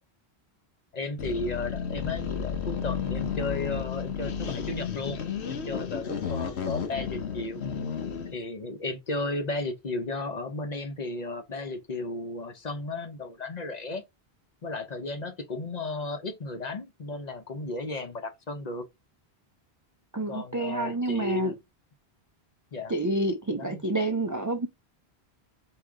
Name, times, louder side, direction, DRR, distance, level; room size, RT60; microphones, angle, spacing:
voice 1, 0.9-7.6 8.3-14.0 14.6-18.9 20.3-21.6 22.7-22.9 23.5-23.8, left 2 dB, 45° left, 0.8 m, -34 dB
sound 1, 1.2-8.4, left 6 dB, 90° left, 1.1 m, -32 dB
voice 2, 20.1-21.5 22.9-24.7, right 1 dB, 30° right, 0.3 m, -28 dB
4.7 x 2.9 x 3.6 m
omnidirectional pair, 1.1 m